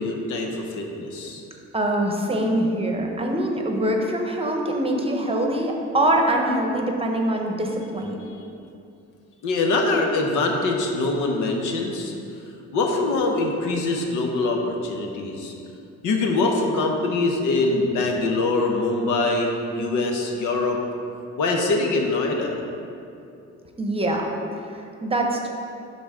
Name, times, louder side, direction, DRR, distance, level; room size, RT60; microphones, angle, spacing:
voice 1, 0.0-1.4 8.4-8.5 9.4-12.1 12.7-15.5 16.0-20.8 21.4-22.6, left 3 dB, 85° left, 1 dB, 0.9 m, -23 dB
voice 2, 1.7-8.2 23.8-24.3 24.7-25.5, right 1 dB, 20° right, 1 dB, 0.9 m, -24 dB
11.0 x 4.0 x 3.7 m, 2.6 s
cardioid pair, 90°, 30 cm